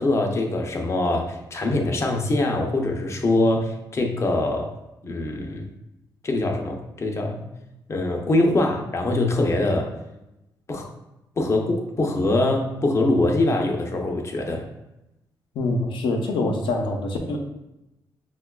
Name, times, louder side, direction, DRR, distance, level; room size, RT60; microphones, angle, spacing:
voice 1, 0.0-4.7 5.0-5.7 6.2-7.4 7.9-9.9 10.7-10.9 11.4-14.7, left 2 dB, 35° left, 2 dB, 0.6 m, -23 dB
voice 2, 15.5-17.4, left 2 dB, 85° left, 2 dB, 0.6 m, -25 dB
5.5 x 2.3 x 2.3 m, 0.93 s
cardioid pair, 90°, 8 cm